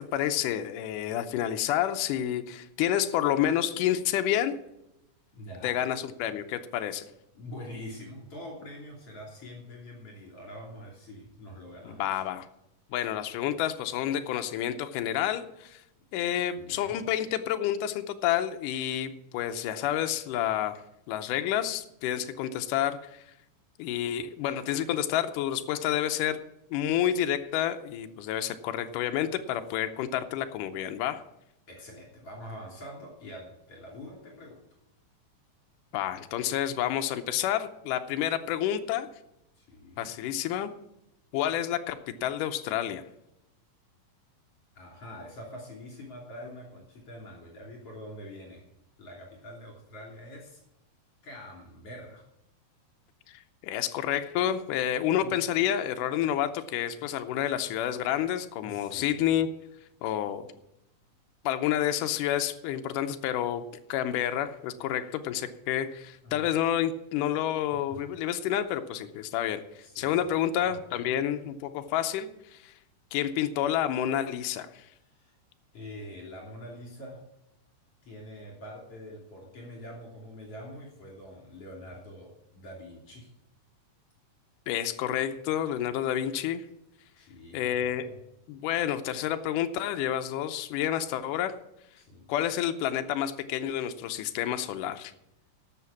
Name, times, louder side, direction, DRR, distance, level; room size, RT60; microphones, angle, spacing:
voice 1, 0.0-4.6 5.6-7.1 11.9-12.5 12.9-15.8 16.1-20.8 21.1-23.2 23.8-26.4 26.7-31.2 35.9-39.1 40.0-40.7 41.3-43.0 53.6-59.5 60.0-60.5 61.5-63.6 63.9-69.6 70.0-72.7 73.1-74.8 84.7-86.6 87.5-88.1 88.5-91.5 92.3-95.1, left 11 dB, 80° left, 7 dB, 2.2 m, -29 dB
voice 2, 5.3-5.8 7.3-12.2 16.6-17.0 31.7-34.6 39.6-40.1 44.8-48.7 49.0-50.6 51.2-52.2 55.2-55.3 58.6-59.3 66.2-66.6 67.9-68.0 69.8-70.3 70.6-70.8 75.0-75.4 75.7-77.2 78.0-83.3 87.2-88.2 92.0-92.3, equal, 50° left, -2 dB, 4.1 m, -45 dB
12.5 x 7.6 x 7.2 m, 0.85 s
omnidirectional pair, 3.8 m